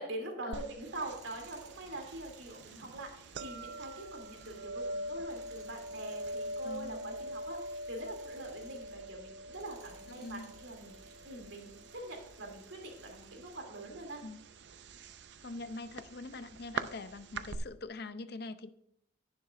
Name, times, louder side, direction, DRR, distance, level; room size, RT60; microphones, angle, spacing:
voice 1, 0.0-14.2, right 2 dB, 80° right, 2 dB, 2.8 m, -44 dB
sound 1, 0.5-17.6, right 1 dB, 60° right, 0.5 m, -44 dB
Tools, 0.8-9.0 9.4-13.7, right 4 dB, 35° right, 2.0 m, -62 dB
voice 2, 6.6-7.2 10.1-10.5 14.2-14.4 15.4-18.7, left 3 dB, 55° left, 13 dB, 0.6 m, -44 dB
10.5 x 9.8 x 2.5 m, 0.73 s
head